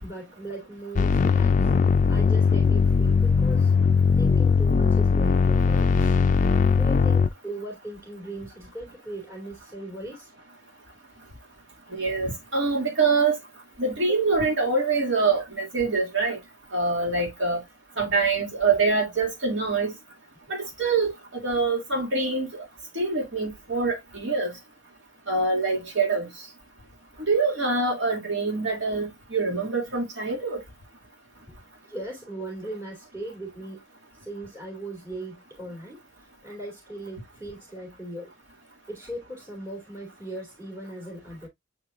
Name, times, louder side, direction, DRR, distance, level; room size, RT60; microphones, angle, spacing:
voice 1, 0.0-1.7 2.1-3.7 4.2-6.2 6.7-10.3 15.4-15.5 31.8-33.8 34.1-38.3 38.9-41.5, right 1 dB, 15° right, 3.0 m, -38 dB
sound 1, 1.0-7.3, left 5 dB, 40° left, 0.3 m, -20 dB
voice 2, 11.9-13.4 13.8-16.4 16.7-17.6 18.0-19.9 20.5-22.6 23.0-24.5 25.3-26.3 27.3-30.6, right 4 dB, 75° right, 2.4 m, -25 dB
8.6 x 4.6 x 2.4 m
head